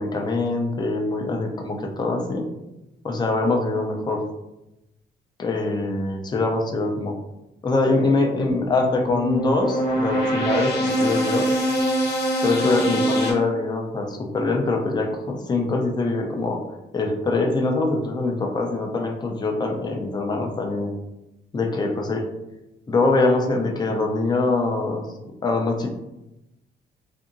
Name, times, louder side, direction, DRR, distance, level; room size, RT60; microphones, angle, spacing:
voice 1, 0.0-2.5 3.0-4.2 5.4-7.1 7.6-10.7 11.0-11.5 12.4-16.6 16.9-20.9 21.5-22.2 22.9-25.1 25.4-25.9, left 3 dB, 20° left, 2 dB, 0.5 m, -23 dB
sound 1, 8.5-13.3, equal, 55° left, 0.9 m, -23 dB
2.7 x 2.6 x 2.5 m, 0.94 s
cardioid pair, 90°, 20 cm